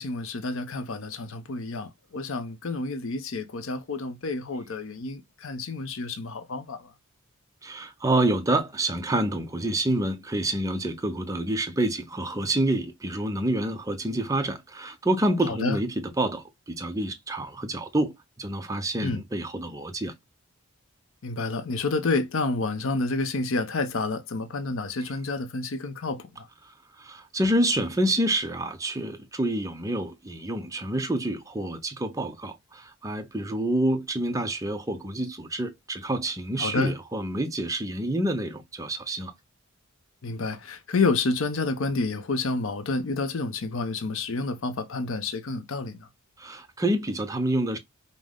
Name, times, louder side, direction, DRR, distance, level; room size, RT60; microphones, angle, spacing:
voice 1, 0.0-6.8 15.4-15.8 19.0-19.2 21.2-26.5 36.6-37.0 40.2-46.1, left 3 dB, 65° left, 0.6 m, -29 dB
voice 2, 7.6-20.1 27.0-39.3 46.4-47.8, right 1 dB, 15° right, 0.5 m, -28 dB
5.2 x 2.0 x 3.6 m
head